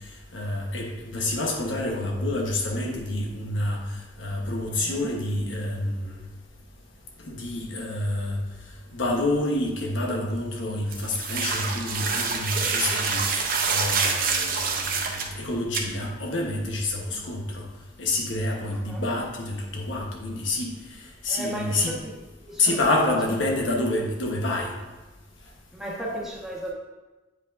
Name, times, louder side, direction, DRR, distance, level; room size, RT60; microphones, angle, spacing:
voice 1, 0.3-6.2 7.2-8.4 8.9-17.7 18.0-22.0 22.6-24.7, left 2 dB, 85° left, 0 dB, 1.1 m, -28 dB
voice 2, 4.7-5.2 17.1-17.2 18.9-19.0 21.3-22.0 22.4-22.8 25.7-26.7, right 1 dB, ahead, -6 dB, 1.3 m, -35 dB
sound 1, 10.9-15.3 15.7-15.8, right 5 dB, 50° right, 0.8 m, -26 dB
8.7 x 5.0 x 2.6 m, 1.1 s
head